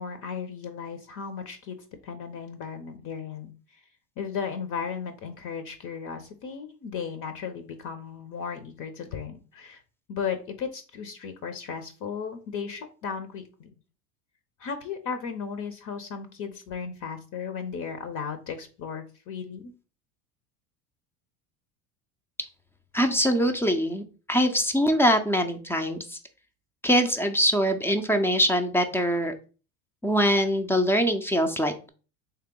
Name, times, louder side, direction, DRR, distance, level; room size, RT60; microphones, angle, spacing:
voice 1, 0.0-1.8 2.0-3.8 4.2-9.8 10.1-13.7 14.6-19.7, left 6 dB, 45° left, 9 dB, 0.7 m, -35 dB
voice 2, 22.9-26.2 26.8-29.3 30.0-31.9, equal, 5° left, 6 dB, 0.4 m, -23 dB
3.2 x 2.9 x 3.6 m, 0.36 s
hypercardioid pair, 90°, 43 cm